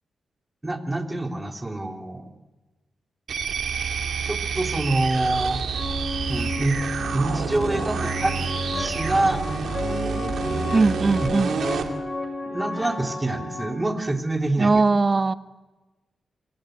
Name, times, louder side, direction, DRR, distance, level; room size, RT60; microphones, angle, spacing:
voice 1, 0.6-2.3 4.2-5.6 6.3-6.8 7.1-8.4 8.8-9.4 11.2-11.3 12.4-14.8, right 2 dB, 20° right, 4 dB, 3.2 m, -26 dB
sound 1, 3.3-11.9, right 6 dB, 75° right, 2.4 m, -28 dB
sound 2, 5.7-13.7, left 2 dB, 35° left, 5.3 m, -32 dB
voice 2, 10.7-11.6 14.6-15.3, right 3 dB, 40° right, 13 dB, 1.0 m, -20 dB
27.0 x 18.0 x 7.9 m, 1.2 s
cardioid pair, 50°, 0 cm